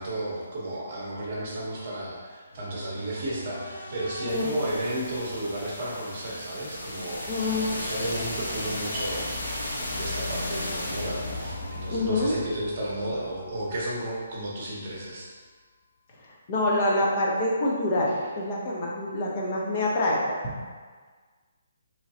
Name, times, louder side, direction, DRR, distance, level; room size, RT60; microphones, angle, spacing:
voice 1, 0.0-9.6 9.9-15.3, right 1 dB, 30° right, -5 dB, 0.9 m, -33 dB
sound 1, 2.5-14.4, left 1 dB, 80° left, 1.0 m, -35 dB
voice 2, 4.2-4.6 7.3-7.6 11.9-12.3 16.2-20.4, left 1 dB, 25° left, -3 dB, 0.6 m, -26 dB
3.7 x 3.1 x 2.7 m, 1.5 s
hypercardioid pair, 175°, 0 cm